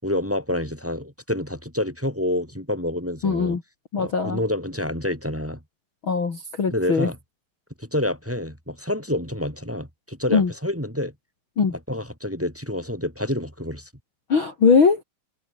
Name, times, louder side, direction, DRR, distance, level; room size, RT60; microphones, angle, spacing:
voice 1, 0.0-3.6 4.0-5.6 6.7-7.2 7.8-11.1 11.7-13.9, left 1 dB, 5° right, 4.4 m, -28 dB
voice 2, 3.2-3.6 3.9-4.4 6.0-7.1 10.3-10.5 11.6-11.7 14.3-15.0, left 5 dB, 35° left, 3.2 m, -20 dB
omnidirectional pair, 4.0 m